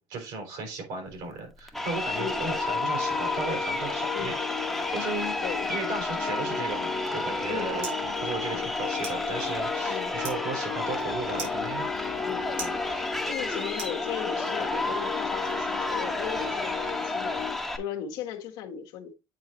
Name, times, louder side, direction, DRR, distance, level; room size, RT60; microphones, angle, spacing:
voice 1, 0.1-4.3 4.9-5.3 5.7-11.9, right 4 dB, 75° right, 4.1 m, -35 dB
Crowd, 1.7-17.8, left 1 dB, ahead, 1.0 m, -31 dB
sound 1, 2.1-17.6, left 9 dB, 50° left, 1.0 m, -36 dB
sound 2, 7.0-14.6, right 4 dB, 90° right, 4.2 m, -45 dB
voice 2, 7.5-8.0 8.5-8.7 9.9-10.1 12.3-19.1, left 8 dB, 75° left, 1.2 m, -37 dB
8.6 x 4.0 x 4.1 m
cardioid pair, 145°, 8 cm